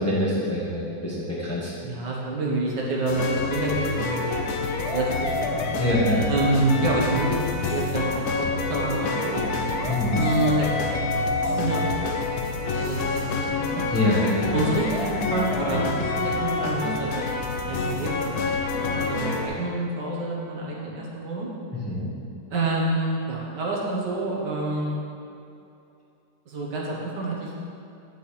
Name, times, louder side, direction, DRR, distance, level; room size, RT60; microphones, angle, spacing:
voice 1, 0.0-1.7 5.8-6.2 9.9-10.2 13.9-14.7 21.7-22.1, left 1 dB, 10° left, -7 dB, 1.4 m, -25 dB
voice 2, 1.8-4.2 4.9-5.6 6.3-9.4 10.1-12.2 12.5-13.8 14.5-17.4 17.6-18.3 18.8-21.5 22.5-24.9 26.5-27.5, right 2 dB, 65° right, -4 dB, 1.9 m, -28 dB
sound 1, 3.1-19.5, left 3 dB, 65° left, 1.0 m, -27 dB
8.9 x 8.3 x 3.3 m, 2.7 s
omnidirectional pair, 2.1 m